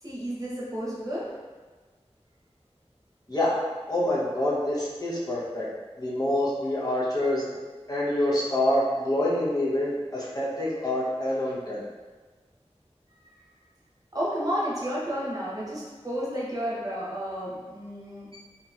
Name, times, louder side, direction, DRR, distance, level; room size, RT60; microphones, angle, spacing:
voice 1, 0.0-1.3 13.2-13.5 14.1-18.3, equal, 30° right, -7 dB, 0.9 m, -32 dB
voice 2, 3.9-5.7 6.0-7.5 7.9-11.8, left 1 dB, 35° left, -7 dB, 0.8 m, -26 dB
2.8 x 2.8 x 2.4 m, 1.3 s
wide cardioid pair, 45°, 12 cm